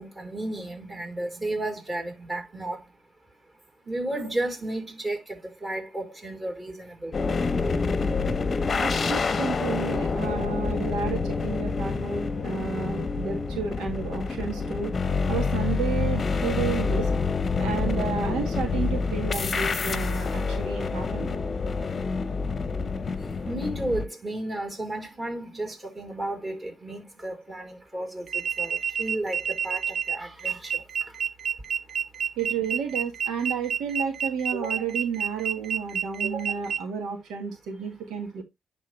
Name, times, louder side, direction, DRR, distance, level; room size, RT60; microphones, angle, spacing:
voice 1, 0.0-2.9 3.9-7.2 23.2-31.2, right 1 dB, 20° right, 4.4 m, -33 dB
sound 1, 7.1-24.1, left 4 dB, 35° left, 0.9 m, -27 dB
voice 2, 8.8-14.9 15.3-17.1 17.6-21.4 32.4-38.4, right 6 dB, 90° right, 1.8 m, -31 dB
sound 2, 28.3-36.8, right 7 dB, 50° right, 1.0 m, -29 dB
11.0 x 3.7 x 3.3 m
cardioid pair, 90°, 0 cm